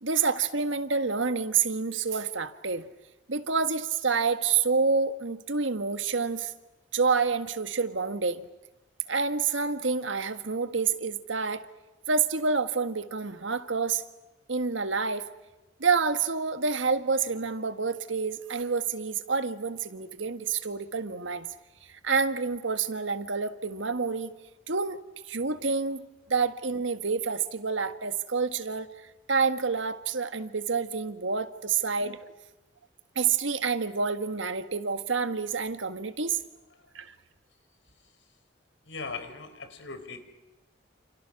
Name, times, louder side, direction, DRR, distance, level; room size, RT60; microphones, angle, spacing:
voice 1, 0.0-2.9 3.3-6.5 6.9-8.5 9.1-11.7 12.1-14.0 14.5-15.3 15.8-21.5 21.8-24.4 24.7-25.0 25.3-26.0 26.3-28.9 29.3-32.2 33.1-36.4 36.9-37.1, right 5 dB, 90° right, 9 dB, 1.7 m, -28 dB
voice 2, 38.8-40.2, left 4 dB, 80° left, 9 dB, 4.0 m, -39 dB
29.5 x 29.0 x 6.0 m, 1.1 s
head